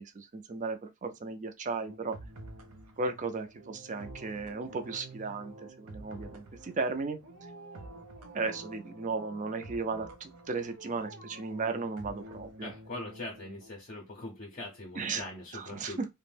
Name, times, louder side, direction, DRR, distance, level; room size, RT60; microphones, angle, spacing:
voice 1, 0.0-2.2 3.0-7.2 8.3-12.7 15.0-15.2 15.5-16.1, right 4 dB, 35° right, 0.4 m, -35 dB
sound 1, 1.9-13.7, right 2 dB, 85° right, 0.5 m, -49 dB
Dog, 3.4-5.5 7.2-8.9 10.6-12.7 13.1-13.2, right 2 dB, 55° right, 0.8 m, -55 dB
voice 2, 12.6-16.0, left 2 dB, 35° left, 0.5 m, -42 dB
2.5 x 2.1 x 3.2 m
head